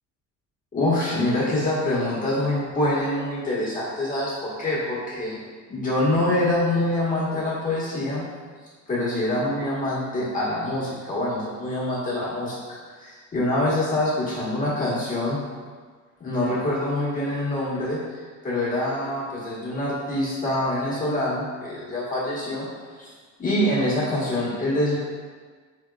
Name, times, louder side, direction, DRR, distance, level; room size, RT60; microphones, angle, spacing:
voice 1, 0.7-5.4 5.7-8.2 8.9-12.6 13.0-15.4 16.2-18.0 18.4-22.7 23.0-23.1 23.4-25.0, left 1 dB, 25° left, -8 dB, 1.2 m, -25 dB
4.0 x 2.9 x 2.3 m, 1.5 s
cardioid pair, 125°, 33 cm